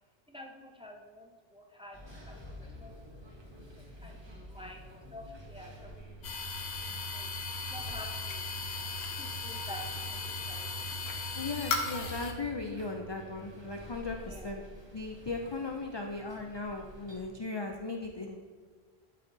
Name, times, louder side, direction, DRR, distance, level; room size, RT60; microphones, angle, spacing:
voice 1, 0.3-2.0 2.3-3.3 3.5-3.6 4.0-5.9 6.2-6.3 7.1-7.3 7.7-8.5 9.0-9.8 10.1-10.7 14.2-14.5, left 1 dB, 5° right, 1 dB, 0.6 m, -49 dB
sound 1, 1.9-17.3, right 1 dB, 25° right, 1.0 m, -50 dB
sound 2, 6.2-12.3, left 3 dB, 85° left, 1.1 m, -36 dB
voice 2, 11.3-14.6 14.9-18.4, left 3 dB, 40° left, 3 dB, 0.3 m, -37 dB
11.5 x 4.2 x 3.9 m, 1.5 s
omnidirectional pair, 1.1 m